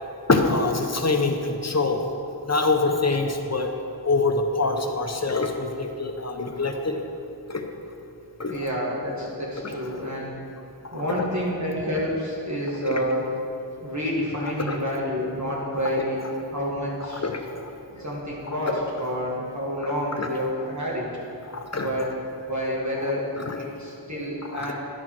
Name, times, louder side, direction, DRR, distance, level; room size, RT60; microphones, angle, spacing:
voice 1, 0.3-2.0 2.5-3.7 4.0-7.0 7.5-7.6 8.4-8.6 9.6-9.8 10.8-11.2 12.9-13.0 14.7-14.8 17.1-17.7 18.7-18.8 20.2-20.3 21.5-21.9 23.4-23.6 24.5-24.7, left 3 dB, 40° left, 4 dB, 0.7 m, -25 dB
voice 2, 8.5-10.4 10.9-13.2 13.8-16.2 16.5-17.2 17.9-21.1 21.8-22.1 22.4-23.3 23.6-24.7, equal, 40° right, -5 dB, 1.5 m, -28 dB
11.0 x 4.5 x 5.9 m, 2.7 s
wide cardioid pair, 70°, 43 cm